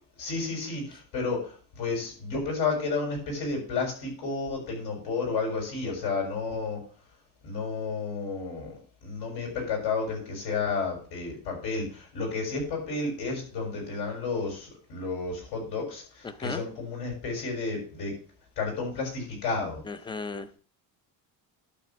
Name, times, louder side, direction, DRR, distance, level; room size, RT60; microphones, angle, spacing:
voice 1, 0.2-6.8 7.4-18.1 18.6-19.8, left 4 dB, 75° left, 6.6 m, -31 dB
voice 2, 16.3-16.6 19.9-20.5, left 4 dB, 10° left, 0.5 m, -35 dB
12.0 x 4.3 x 7.3 m
cardioid pair, 170°, 40 cm